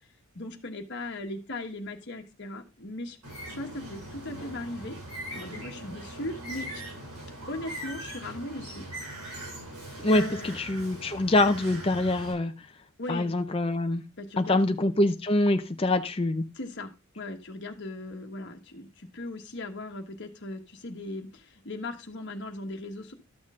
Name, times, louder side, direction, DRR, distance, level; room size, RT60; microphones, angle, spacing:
voice 1, 0.3-3.2 3.5-5.0 5.3-6.8 7.5-8.9 9.4-9.5 10.1-10.6 13.0-13.3 14.2-14.7 16.5-23.1, left 2 dB, 50° left, 3 dB, 1.3 m, -38 dB
Bird, 3.2-12.3, right 1 dB, 90° right, 7.2 m, -40 dB
voice 2, 10.0-12.5 13.1-14.0 14.4-16.4, left 2 dB, 25° left, 6 dB, 0.6 m, -25 dB
12.5 x 6.3 x 3.7 m, 0.28 s
head